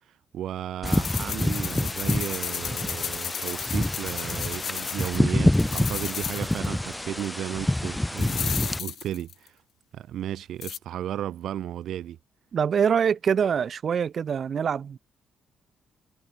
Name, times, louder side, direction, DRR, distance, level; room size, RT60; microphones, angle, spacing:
voice 1, 0.3-9.6 9.9-12.2, right 11 dB, 75° right, 3.1 m, -34 dB
sound 1, 0.8-8.8, left 1 dB, 10° left, 0.4 m, -27 dB
sound 2, 0.9-5.2 5.5-6.7 6.9-7.0 8.2-9.5 10.6-10.8, left 10 dB, 70° left, 0.9 m, -34 dB
voice 2, 12.5-15.0, right 7 dB, 50° right, 3.3 m, -24 dB
cardioid pair, 90°, 0 cm